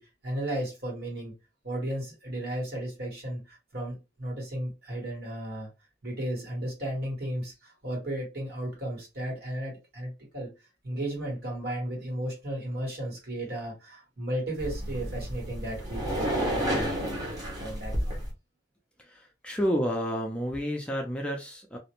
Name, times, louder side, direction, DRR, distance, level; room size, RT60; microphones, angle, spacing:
voice 1, 0.0-1.3 1.6-5.7 6.0-10.5 10.8-18.1, right 1 dB, 55° right, 1.3 m, -35 dB
sound 1, 14.6-18.3, equal, 20° right, 0.8 m, -31 dB
voice 2, 19.0-21.8, equal, 5° left, 0.4 m, -30 dB
2.4 x 2.1 x 2.9 m
head